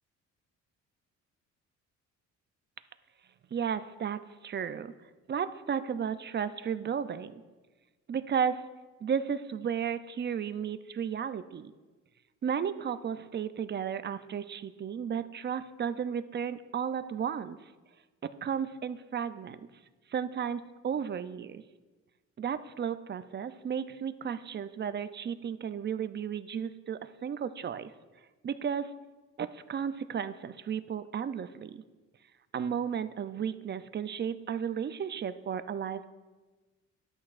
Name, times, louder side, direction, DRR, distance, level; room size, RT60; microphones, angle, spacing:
voice 1, 3.5-4.9 5.3-7.4 8.1-8.6 9.0-11.7 12.4-17.6 18.2-19.6 20.1-21.6 22.4-27.9 28.4-28.9 29.4-31.8 32.5-36.1, right 7 dB, 35° right, 12 dB, 0.5 m, -34 dB
12.5 x 8.6 x 2.5 m, 1.2 s
cardioid pair, 90°, 30 cm